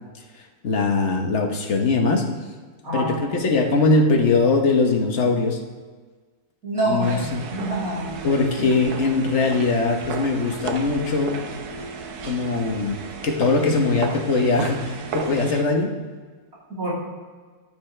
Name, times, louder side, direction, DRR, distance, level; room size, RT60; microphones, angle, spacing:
voice 1, 0.6-2.2 2.9-5.6 6.9-7.4 8.2-11.4 12.2-13.0 13.2-15.9, left 3 dB, 50° left, 2 dB, 1.3 m, -21 dB
voice 2, 2.8-3.1 6.6-8.1 16.7-16.9, right 2 dB, 60° right, -8 dB, 3.7 m, -26 dB
sound 1, 7.0-15.6, right 4 dB, 80° right, 1.3 m, -33 dB
14.0 x 6.6 x 3.3 m, 1.4 s
omnidirectional pair, 1.6 m